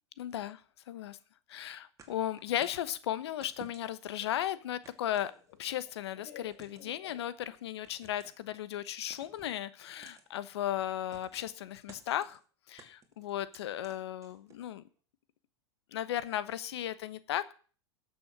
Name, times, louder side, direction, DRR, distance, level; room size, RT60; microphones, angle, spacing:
voice 1, 0.2-0.6 0.9-1.2 1.5-5.3 5.6-12.4 12.7-14.8 15.9-17.5, left 12 dB, 75° left, 15 dB, 1.0 m, -36 dB
sound 1, 2.0-2.9 3.4-4.1 4.8-5.8 6.5-7.0 7.9-8.5 9.1-9.6 10.0-10.3 11.1-11.5 11.9-12.4 12.8-14.7, right 5 dB, 25° right, 2.6 m, -56 dB
Laughter, 4.2-7.9, left 8 dB, 55° left, 5.0 m, -55 dB
12.0 x 7.0 x 6.0 m, 0.39 s
hypercardioid pair, 105°, 14 cm